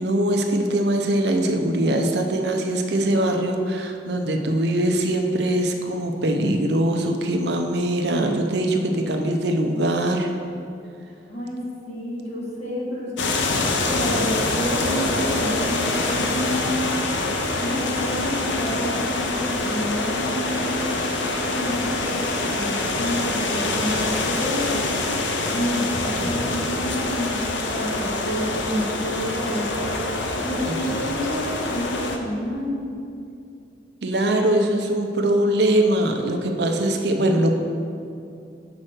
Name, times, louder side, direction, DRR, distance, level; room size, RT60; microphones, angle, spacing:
voice 1, 0.0-10.3 30.5-30.7 34.0-37.5, right 1 dB, 65° right, 4 dB, 0.6 m, -22 dB
voice 2, 11.1-11.6 11.9-13.3 13.9-16.7 17.6-25.1 25.5-27.4 27.7-29.9 30.3-32.8, equal, 35° left, -4 dB, 1.4 m, -29 dB
sound 1, 13.2-32.2, left 2 dB, 80° left, 0.7 m, -25 dB
6.1 x 4.3 x 6.4 m, 2.5 s
head